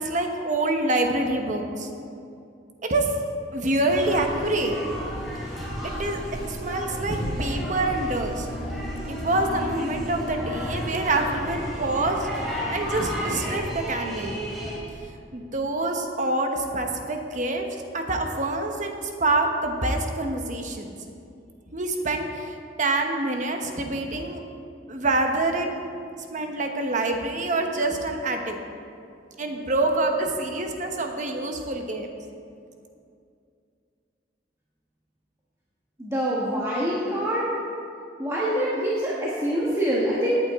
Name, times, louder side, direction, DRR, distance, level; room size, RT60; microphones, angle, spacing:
voice 1, 0.0-1.9 2.8-3.1 3.5-4.8 5.8-6.2 6.5-8.5 9.1-14.4 15.3-17.7 17.9-20.9 21.7-24.4 24.9-25.7 26.2-28.6 29.4-32.1, right 2 dB, 45° right, 3 dB, 1.1 m, -26 dB
sound 1, 3.9-14.8, equal, ahead, 3.2 m, -32 dB
voice 2, 36.0-37.4 38.2-40.4, equal, 15° right, -7 dB, 1.4 m, -25 dB
17.0 x 8.8 x 3.7 m, 2.4 s
head